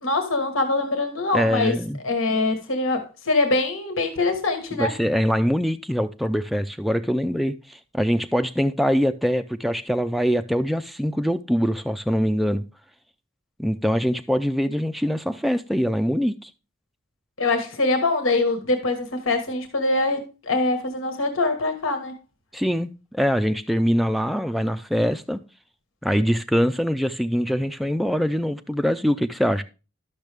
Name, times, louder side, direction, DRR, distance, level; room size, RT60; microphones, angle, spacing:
voice 1, 0.0-1.7 2.0-4.9 17.4-22.1, left 2 dB, 85° left, 1.5 m, -23 dB
voice 2, 1.3-2.0 4.8-12.6 13.6-16.5 22.5-25.4 26.0-29.6, equal, ahead, 0.3 m, -23 dB
12.0 x 6.4 x 3.4 m
head